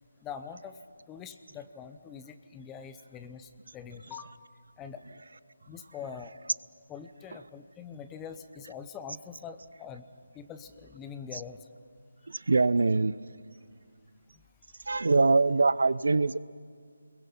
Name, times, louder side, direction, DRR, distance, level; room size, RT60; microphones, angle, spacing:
voice 1, 0.2-0.8 1.1-4.4 4.8-5.0 5.7-6.3 6.9-10.0 10.3-11.6, left 7 dB, 10° left, 9 dB, 0.7 m, -43 dB
voice 2, 12.3-13.2 14.8-16.4, right 3 dB, 65° right, 18 dB, 0.6 m, -23 dB
30.0 x 22.0 x 5.8 m, 2.1 s
figure-of-eight pair, 165°, 0 cm